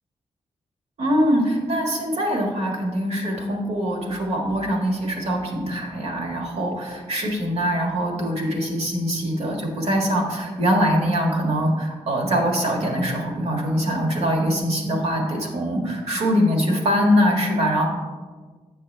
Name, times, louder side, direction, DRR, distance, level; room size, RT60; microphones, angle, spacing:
voice 1, 1.0-17.9, equal, 65° right, 0 dB, 1.6 m, -23 dB
7.9 x 5.7 x 3.3 m, 1.4 s
wide cardioid pair, 105°, 12 cm